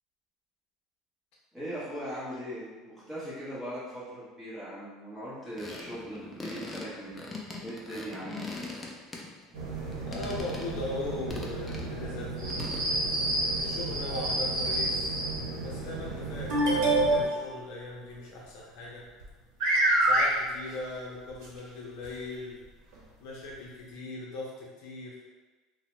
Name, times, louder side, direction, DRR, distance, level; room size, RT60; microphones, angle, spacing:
voice 1, 1.5-8.3, equal, 5° right, -11 dB, 1.0 m, -40 dB
sound 1, 5.6-9.6 9.9-10.8 11.3-11.9 12.5-12.9, left 3 dB, 10° left, 0.3 m, -41 dB
voice 2, 6.0-6.3 10.1-12.7 13.6-15.2 15.6-19.0 20.0-22.6 23.2-25.2, left 2 dB, 60° left, -3 dB, 0.5 m, -39 dB
sound 2, 9.5-17.3, right 3 dB, 90° right, 0.9 m, -37 dB
sound 3, 12.4-15.4 16.5-17.5 19.2-19.3 19.6-20.3 21.4-21.5 22.0-22.1 22.9-23.0, right 1 dB, 65° right, 0.9 m, -26 dB
2.8 x 2.0 x 3.0 m, 1.3 s
cardioid pair, 165°, 0 cm